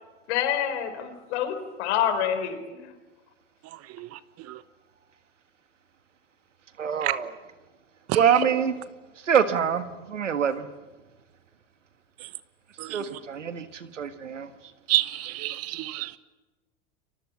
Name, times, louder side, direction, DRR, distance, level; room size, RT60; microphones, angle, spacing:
voice 1, 0.3-2.9, left 9 dB, 65° left, 9 dB, 4.5 m, -27 dB
voice 2, 6.8-7.3 8.1-8.8 9.3-10.7 12.9-14.5, right 8 dB, 90° right, 10 dB, 1.7 m, -25 dB
voice 3, 12.8-13.2 14.9-16.1, right 17 dB, 45° right, 15 dB, 1.2 m, -28 dB
30.0 x 24.0 x 7.3 m, 1.2 s
hypercardioid pair, 90°, 36 cm